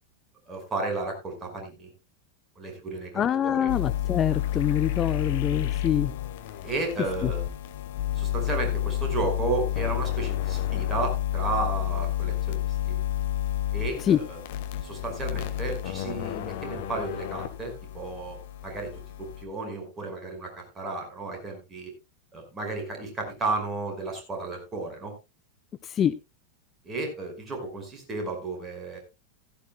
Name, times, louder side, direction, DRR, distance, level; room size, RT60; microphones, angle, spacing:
voice 1, 0.5-1.9 2.6-3.7 6.6-7.5 8.2-13.0 13.7-14.4 14.8-18.4 18.6-18.9 19.2-21.9 22.3-25.1 26.8-29.0, right 3 dB, 20° right, 3 dB, 5.2 m, -33 dB
voice 2, 3.1-6.1 7.2-7.3 14.0-14.2 25.8-26.1, left 9 dB, 25° left, 14 dB, 0.5 m, -25 dB
sound 1, 3.7-19.4, left 13 dB, 50° left, 1.3 m, -30 dB
15.5 x 14.0 x 2.2 m, 0.25 s
figure-of-eight pair, 90°, 0 cm